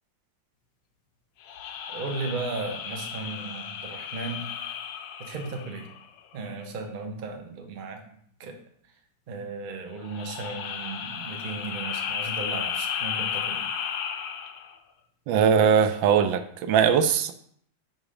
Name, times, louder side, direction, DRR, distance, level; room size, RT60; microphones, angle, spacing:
sound 1, 1.4-6.2 10.0-14.8, left 8 dB, 75° left, 1.3 m, -34 dB
voice 1, 1.9-4.5 5.2-5.9 6.3-8.0 8.4-8.6 9.3-13.7, right 3 dB, 50° right, 4 dB, 0.6 m, -35 dB
voice 2, 15.3-17.3, right 7 dB, 85° right, 9 dB, 1.3 m, -20 dB
5.6 x 3.9 x 4.9 m, 0.65 s
omnidirectional pair, 2.0 m